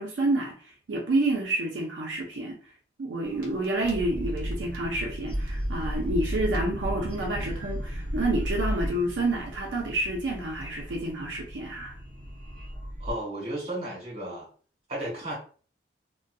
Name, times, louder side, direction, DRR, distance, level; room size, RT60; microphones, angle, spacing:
voice 1, 0.0-2.6 3.0-12.0, right 2 dB, 85° right, 0.5 m, -29 dB
sound 1, 3.2-13.1, equal, 50° right, 0.7 m, -34 dB
voice 2, 13.0-14.5 14.9-15.3, right 1 dB, 35° right, 1.3 m, -33 dB
2.6 x 2.1 x 2.2 m
head